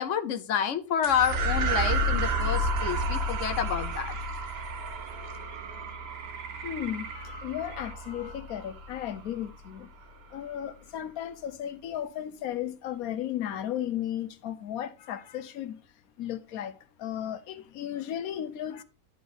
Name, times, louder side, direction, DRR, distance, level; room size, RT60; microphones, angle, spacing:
voice 1, 0.0-4.1, left 8 dB, 65° left, 1.0 m, -29 dB
sound 1, 1.0-9.7, right 1 dB, 50° right, 1.0 m, -31 dB
sound 2, 2.4-7.9, right 5 dB, 65° right, 1.3 m, -46 dB
voice 2, 6.6-9.9 10.3-15.8 16.2-18.8, left 10 dB, 80° left, 1.2 m, -35 dB
11.0 x 4.0 x 3.9 m
omnidirectional pair, 1.5 m